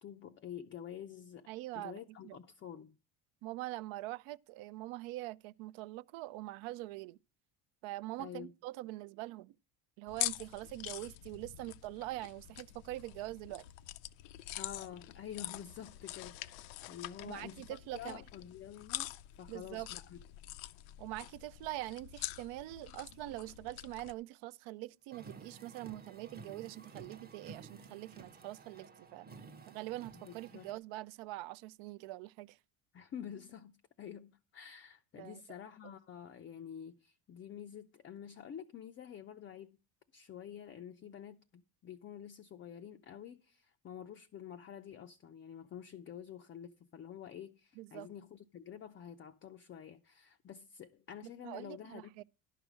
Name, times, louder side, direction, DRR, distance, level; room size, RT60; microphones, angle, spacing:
voice 1, 0.0-1.5 1.7-3.0 8.2-8.5 14.6-19.1 19.4-20.2 30.1-30.7 32.9-33.7 34.0-39.8 40.1-52.2, left 9 dB, 25° left, 0.4 m, -48 dB
voice 2, 1.5-2.4 3.4-7.2 7.8-9.6 10.0-13.7 17.2-18.2 19.5-19.9 21.0-29.3 29.7-32.6 35.2-35.4 47.8-48.1 51.4-52.2, right 17 dB, 70° right, 0.5 m, -44 dB
sound 1, 10.1-24.1, left 16 dB, 90° left, 0.6 m, -45 dB
Car, 25.1-30.8, right 4 dB, 20° right, 0.7 m, -53 dB
11.0 x 5.0 x 6.2 m
cardioid pair, 105°, 49 cm